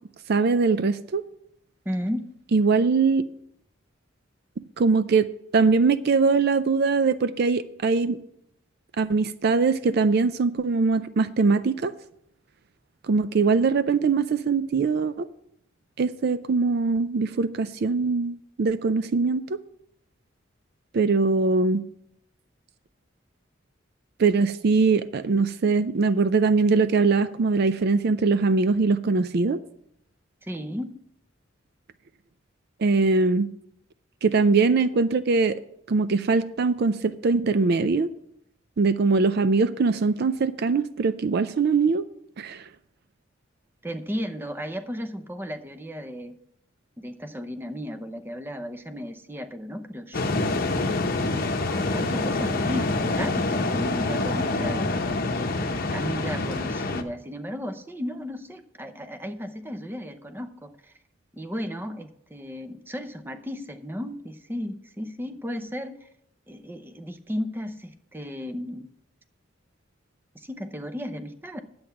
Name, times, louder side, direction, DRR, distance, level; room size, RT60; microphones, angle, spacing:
voice 1, 0.3-1.2 2.5-3.3 4.8-5.3 5.5-8.2 9.0-11.9 13.1-15.3 16.0-19.6 20.9-21.8 24.2-29.6 32.8-33.5 34.2-35.6 35.9-38.1 38.8-42.0 42.4-42.6, right 4 dB, 55° right, 13 dB, 0.4 m, -22 dB
voice 2, 1.9-2.3 30.4-31.0 43.8-46.3 47.0-50.5 51.2-51.3 51.7-54.9 55.3-55.5 55.9-60.9 61.3-66.0 66.5-68.9 70.3-71.6, equal, 10° right, 8 dB, 0.7 m, -34 dB
sound 1, 50.1-57.0, left 2 dB, 50° left, 0.8 m, -26 dB
10.5 x 7.9 x 5.8 m, 0.74 s
head